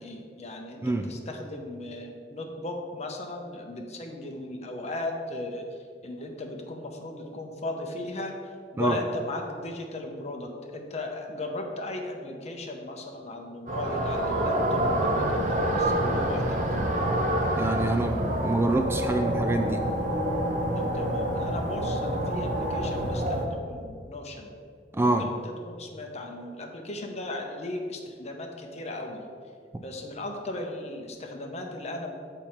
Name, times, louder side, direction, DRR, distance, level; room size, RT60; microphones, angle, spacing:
voice 1, 0.0-5.6 6.0-8.3 8.7-16.6 20.7-24.5 25.0-29.2 29.8-32.1, left 2 dB, 40° left, 3 dB, 0.9 m, -37 dB
voice 2, 0.8-1.1 8.8-9.0 17.6-19.9 24.9-25.3, right 2 dB, 15° right, 5 dB, 0.3 m, -26 dB
sound 1, 13.7-23.5, right 1 dB, 45° right, 0.9 m, -27 dB
7.0 x 4.5 x 5.6 m, 2.2 s
head